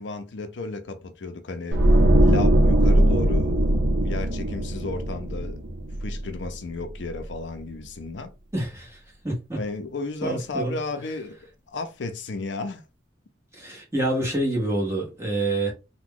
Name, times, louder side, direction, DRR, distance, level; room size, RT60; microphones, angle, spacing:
voice 1, 0.0-1.8 2.2-3.7 4.0-5.6 6.0-8.3 9.6-12.8, left 3 dB, 70° left, 0.5 m, -33 dB
sound 1, 1.7-6.8 7.1-7.3, right 1 dB, 75° right, 0.7 m, -20 dB
voice 2, 8.5-9.6 10.2-10.8 13.5-15.7, right 1 dB, 15° right, 1.2 m, -27 dB
2.9 x 2.2 x 3.7 m
head